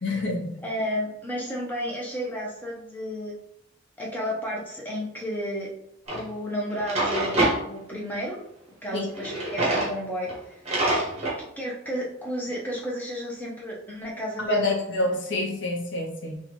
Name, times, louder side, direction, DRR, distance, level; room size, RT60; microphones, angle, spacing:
voice 1, 0.0-0.6 8.9-9.1 14.4-16.4, left 2 dB, 55° left, 1 dB, 0.7 m, -27 dB
voice 2, 0.6-3.3 4.0-5.7 6.1-8.4 8.8-10.6 11.6-14.7, equal, 10° left, -3 dB, 0.7 m, -32 dB
Drawer open or close, 6.1-6.2 6.7-7.6 9.1-9.9 10.3-10.4 10.7-11.4, right 1 dB, 30° right, 1.3 m, -25 dB
4.1 x 2.4 x 3.0 m, 0.75 s
head